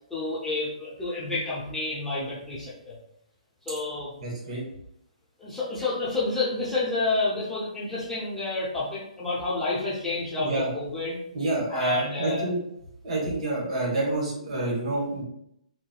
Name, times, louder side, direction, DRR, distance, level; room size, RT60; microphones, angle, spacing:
voice 1, 0.1-3.0 3.7-4.1 5.4-11.2 11.7-12.5, left 2 dB, 5° left, -10 dB, 0.9 m, -29 dB
voice 2, 4.2-4.6 10.4-10.7 11.3-12.6 13.0-15.2, right 2 dB, 55° right, -4 dB, 1.4 m, -28 dB
3.7 x 2.1 x 2.4 m, 0.76 s
hypercardioid pair, 135°, 4 cm